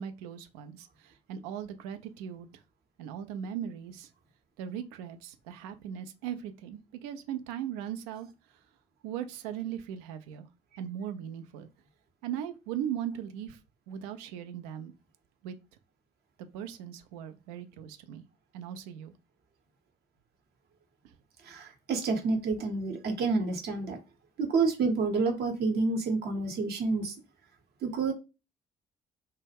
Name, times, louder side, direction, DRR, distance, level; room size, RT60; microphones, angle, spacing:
voice 1, 0.0-2.5 3.0-4.1 4.6-8.3 9.0-10.5 10.8-11.7 12.2-13.6 13.9-14.9 15.4-15.6 16.4-18.2 18.5-19.1, right 9 dB, 65° right, 0.4 m, -38 dB
voice 2, 21.5-24.0 24.4-27.1 27.8-28.1, right 4 dB, 50° right, 0.8 m, -29 dB
2.2 x 2.0 x 3.3 m
figure-of-eight pair, 45°, 21 cm